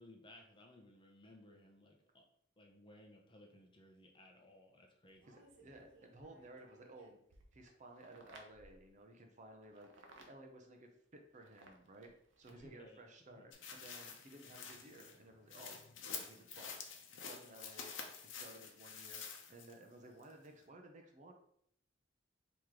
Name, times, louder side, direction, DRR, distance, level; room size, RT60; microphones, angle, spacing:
voice 1, 0.0-2.2 2.6-5.3 12.5-13.0 13.3-13.4, left 1 dB, 25° left, 1 dB, 0.7 m, -60 dB
sound 1, 5.1-8.9 9.6-10.3 11.3-12.8 14.2-14.3, right 2 dB, 90° right, 0.8 m, -62 dB
voice 2, 5.3-7.2 7.5-15.8 16.1-16.8 17.1-17.9 18.2-21.3, right 1 dB, 40° right, 3 dB, 0.6 m, -57 dB
sound 2, 13.5-19.8 20.2-20.3, left 6 dB, 90° left, 0.7 m, -49 dB
4.7 x 3.0 x 3.7 m, 0.70 s
head